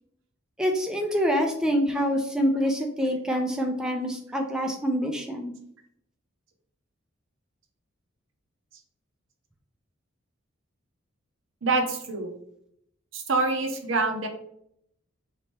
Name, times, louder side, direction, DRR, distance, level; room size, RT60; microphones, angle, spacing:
voice 1, 0.6-5.5, equal, 5° right, 1 dB, 0.4 m, -26 dB
voice 2, 11.6-12.3 13.1-14.3, right 3 dB, 70° right, 5 dB, 0.7 m, -26 dB
4.2 x 2.9 x 3.2 m, 0.72 s
head